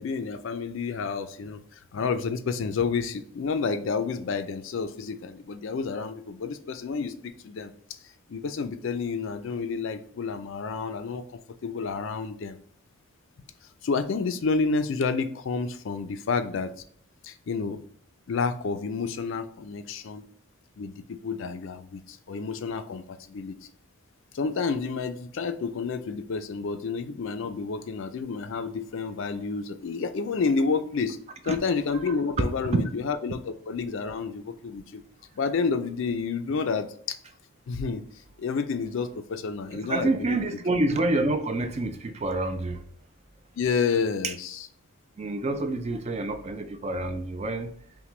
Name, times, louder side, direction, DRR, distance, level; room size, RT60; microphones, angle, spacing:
voice 1, 0.0-1.6 1.9-8.0 8.3-11.2 11.6-12.6 13.8-16.7 17.2-17.8 18.3-20.3 20.8-23.6 24.3-31.2 31.5-35.0 35.4-37.2 37.7-38.0 38.4-40.5 43.6-44.7, left 5 dB, 60° left, 10 dB, 0.4 m, -30 dB
voice 2, 39.9-42.8 44.2-44.3 45.2-47.7, right 2 dB, 30° right, 8 dB, 0.3 m, -27 dB
5.8 x 2.2 x 3.1 m, 0.62 s
head